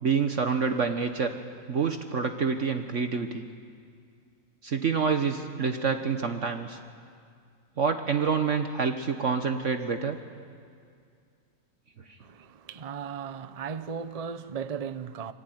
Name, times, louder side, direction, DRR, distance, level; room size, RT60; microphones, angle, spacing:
voice 1, 0.0-1.4 1.7-3.4 4.6-6.8 7.8-10.2, right 5 dB, 55° right, 1.5 m, -27 dB
voice 2, 12.2-15.3, right 6 dB, 30° right, 0.7 m, -36 dB
26.0 x 25.0 x 9.3 m
omnidirectional pair, 1.6 m